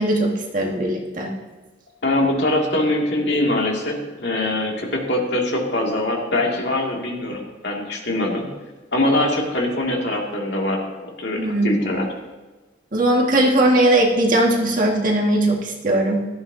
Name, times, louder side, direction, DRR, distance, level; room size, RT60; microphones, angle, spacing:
voice 1, 0.0-1.3 11.4-12.0 12.9-16.2, right 1 dB, 50° right, -1 dB, 1.9 m, -19 dB
voice 2, 2.0-8.4 8.9-12.1, left 1 dB, 70° left, -1 dB, 2.4 m, -23 dB
16.5 x 13.5 x 2.8 m, 1.2 s
head